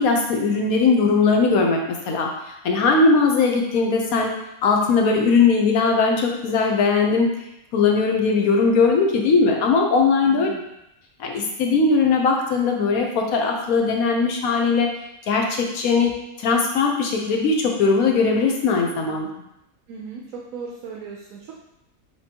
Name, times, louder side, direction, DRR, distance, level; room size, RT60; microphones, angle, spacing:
voice 1, 0.0-4.3 4.6-7.3 7.7-10.5 11.2-14.9 15.3-19.3, left 4 dB, 85° left, 1 dB, 1.2 m, -19 dB
voice 2, 10.3-10.6 19.9-21.5, right 5 dB, 75° right, -2 dB, 1.1 m, -37 dB
6.0 x 3.0 x 2.8 m, 0.84 s
omnidirectional pair, 1.5 m